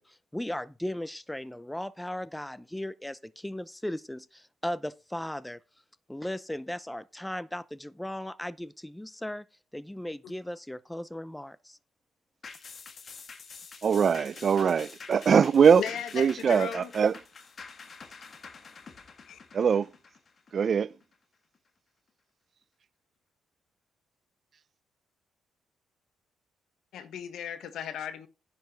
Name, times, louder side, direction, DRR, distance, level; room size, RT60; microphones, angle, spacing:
voice 1, 0.0-5.6 6.1-9.5 9.7-11.8, left 1 dB, 5° left, 0.7 m, -37 dB
sound 1, 12.4-21.1 21.6-21.7, left 5 dB, 45° left, 1.6 m, -47 dB
voice 2, 13.8-15.8 16.1-17.1 19.5-19.9 20.5-20.9, right 7 dB, 50° right, 0.5 m, -22 dB
voice 3, 15.8-16.9 19.3-19.4 26.9-28.3, left 8 dB, 75° left, 1.5 m, -36 dB
10.5 x 5.7 x 6.4 m
cardioid pair, 90°, 0 cm